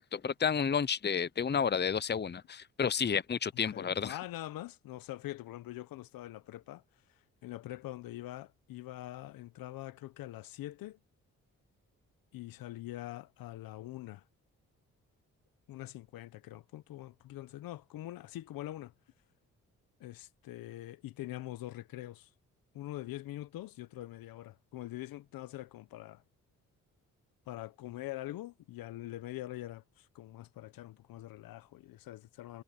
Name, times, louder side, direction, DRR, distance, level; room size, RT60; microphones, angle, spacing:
voice 1, 0.0-4.2, left 7 dB, 30° left, 0.8 m, -31 dB
voice 2, 3.7-6.8 7.1-11.0 12.3-14.2 15.7-18.9 20.0-22.3 22.7-26.2 27.5-32.6, left 15 dB, 80° left, 1.1 m, -44 dB
supercardioid pair, 50°, 34 cm